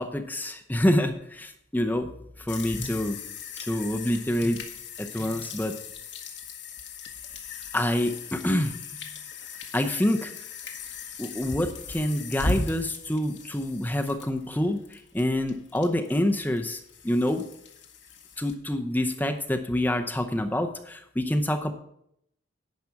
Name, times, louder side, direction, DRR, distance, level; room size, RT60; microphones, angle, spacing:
voice 1, 0.0-2.1 2.4-3.2 3.6-4.6 5.0-5.8 7.7-8.8 9.7-10.3 11.2-17.4 18.4-21.7, left 1 dB, 10° left, 5 dB, 0.7 m, -27 dB
sound 1, 2.5-18.5, left 3 dB, 60° left, 1.4 m, -38 dB
10.5 x 5.0 x 7.0 m, 0.73 s
head